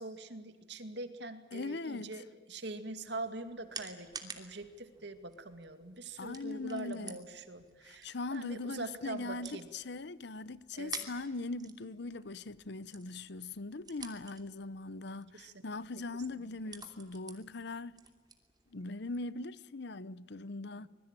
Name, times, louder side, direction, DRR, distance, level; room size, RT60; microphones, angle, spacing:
voice 1, 0.0-9.7 10.8-11.1 15.3-15.6 20.7-20.9, right 2 dB, 70° right, 2.3 m, -44 dB
voice 2, 1.5-2.2 6.2-7.2 7.8-18.0 18.7-20.9, left 3 dB, 65° left, 0.8 m, -40 dB
sound 1, 2.9-19.3, right 5 dB, 25° right, 2.8 m, -52 dB
25.5 x 21.5 x 9.1 m
head